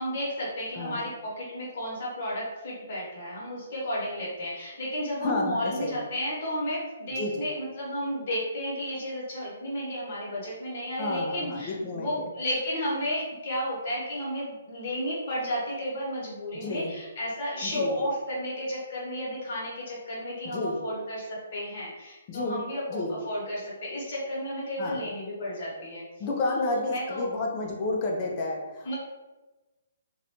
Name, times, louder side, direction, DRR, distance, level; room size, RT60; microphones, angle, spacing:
voice 1, 0.0-26.0 26.5-27.3 28.8-28.9, equal, 40° left, -6 dB, 1.0 m, -32 dB
voice 2, 5.2-6.0 7.1-7.5 11.0-12.3 16.5-16.9 17.6-17.9 20.4-20.8 22.3-22.6 22.9-23.2 24.8-25.1 26.2-28.9, left 2 dB, 25° left, -1 dB, 0.4 m, -31 dB
2.6 x 2.1 x 2.8 m, 1.1 s
hypercardioid pair, 170°, 0 cm